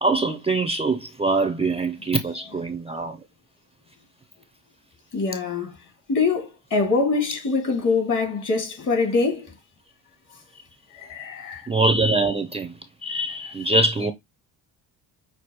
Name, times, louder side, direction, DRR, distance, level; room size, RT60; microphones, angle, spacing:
voice 1, 0.0-3.2 11.7-12.7 13.0-14.1, right 2 dB, 15° right, 0.5 m, -23 dB
voice 2, 5.1-5.8 6.1-9.5 10.9-11.6, left 4 dB, 50° left, 2.4 m, -24 dB
6.0 x 2.6 x 2.9 m
cardioid pair, 100°, 39 cm